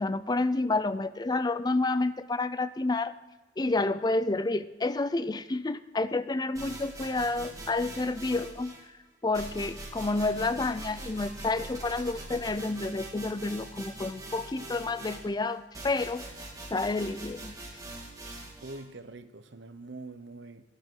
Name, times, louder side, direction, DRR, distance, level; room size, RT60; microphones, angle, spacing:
voice 1, 0.0-3.1 3.6-8.7 9.2-16.3 16.7-17.5, left 2 dB, 20° left, 13 dB, 0.4 m, -29 dB
sound 1, 6.5-8.8 9.3-18.8, right 2 dB, 20° right, 2.0 m, -43 dB
voice 2, 18.6-20.6, right 2 dB, 70° right, 10 dB, 0.9 m, -44 dB
12.5 x 12.0 x 3.8 m, 1.2 s
head